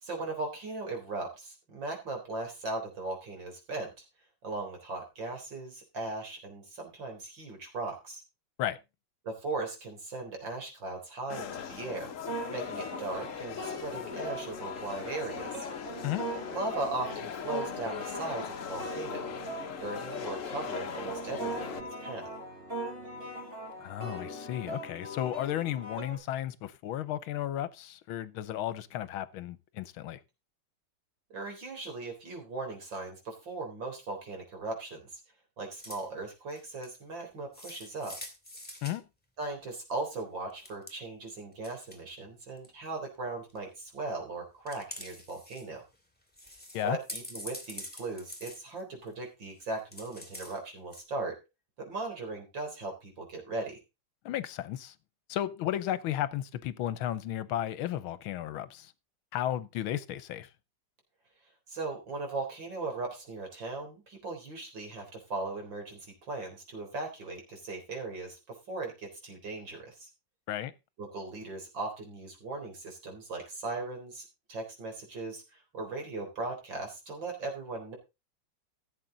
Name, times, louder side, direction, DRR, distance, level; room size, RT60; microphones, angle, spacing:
voice 1, 0.0-3.9 4.4-8.2 9.2-12.1 12.5-15.7 16.5-19.3 19.8-22.3 31.3-35.1 35.6-38.2 39.4-45.8 46.8-51.4 51.8-53.8 61.7-70.1 71.0-78.0, right 3 dB, 60° right, 4.5 m, -38 dB
sound 1, 11.3-21.8, left 8 dB, 50° left, 1.0 m, -40 dB
sound 2, 12.2-26.2, right 1 dB, 30° right, 5.1 m, -40 dB
voice 2, 23.8-30.2 38.8-39.0 46.7-47.0 54.2-54.9 55.3-58.9 59.3-60.5 70.5-70.7, left 12 dB, 80° left, 1.6 m, -34 dB
sound 3, 35.8-36.1 36.5-36.9 37.5-39.0 40.5-40.9 41.5-42.0 42.4-42.9 43.5-43.9 44.7-45.7 45.9-46.0 46.3-49.2 49.6-50.6 50.9-51.0, left 1 dB, 5° left, 2.4 m, -45 dB
15.5 x 7.6 x 3.9 m
omnidirectional pair, 2.3 m